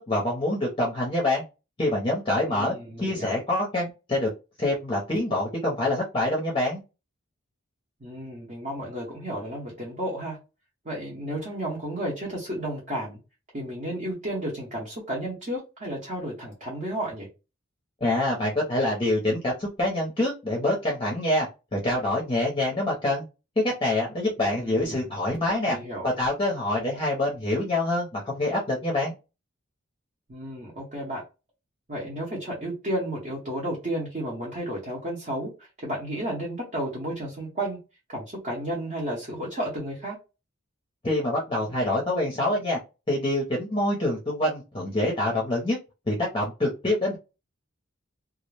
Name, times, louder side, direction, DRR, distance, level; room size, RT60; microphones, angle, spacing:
voice 1, 0.1-1.4 1.8-4.3 4.6-6.8 18.0-21.5 21.7-23.2 23.6-25.8 26.0-29.1 41.0-42.8 43.1-45.8 46.1-47.2, left 1 dB, 25° left, -2 dB, 0.6 m, -26 dB
voice 2, 2.5-3.3 8.0-10.4 10.8-13.2 13.5-17.3 24.6-25.1 25.7-26.1 30.3-31.2 31.9-37.8 38.1-40.2, right 1 dB, 40° right, -4 dB, 0.8 m, -32 dB
2.4 x 2.0 x 3.1 m, 0.28 s
head